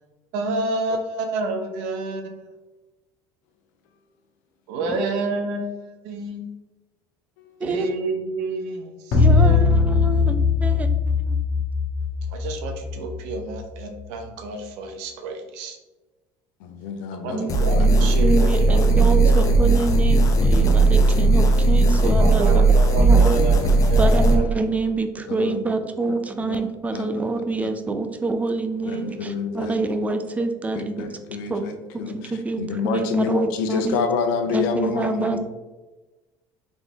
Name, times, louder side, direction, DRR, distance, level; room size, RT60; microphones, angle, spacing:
voice 1, 0.3-2.5 4.7-6.5 7.6-9.8 12.3-15.8 17.2-19.5 22.0-24.4, right 2 dB, 80° right, 4 dB, 0.7 m, -29 dB
sound 1, 9.1-13.6, left 4 dB, 65° left, 1.3 m, -20 dB
voice 2, 9.2-11.4 17.3-23.3 24.0-30.9 31.5-31.6 32.1-32.6 32.9-34.0 34.5-35.4, right 3 dB, 15° right, 7 dB, 0.5 m, -26 dB
voice 3, 16.6-18.1 20.4-20.6 21.0-21.4 21.7-21.9 22.3-22.4 25.3-25.6 26.4-26.6 26.9-27.1 27.6-27.7 28.9-29.8 30.7-35.4, left 5 dB, 90° left, 7 dB, 0.7 m, -28 dB
sound 2, 17.5-24.4, right 2 dB, 35° left, 0.8 m, -17 dB
3.9 x 3.6 x 3.5 m, 1.1 s
cardioid pair, 125°, 10 cm